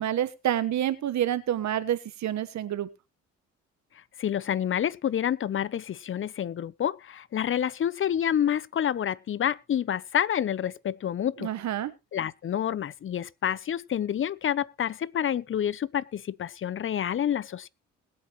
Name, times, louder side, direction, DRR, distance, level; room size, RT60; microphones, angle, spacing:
voice 1, 0.0-2.9 11.4-11.9, right 11 dB, 65° right, 1.3 m, -28 dB
voice 2, 4.2-11.5 12.1-17.7, left 9 dB, 45° left, 0.7 m, -28 dB
21.0 x 8.6 x 3.1 m
cardioid pair, 90°, 30 cm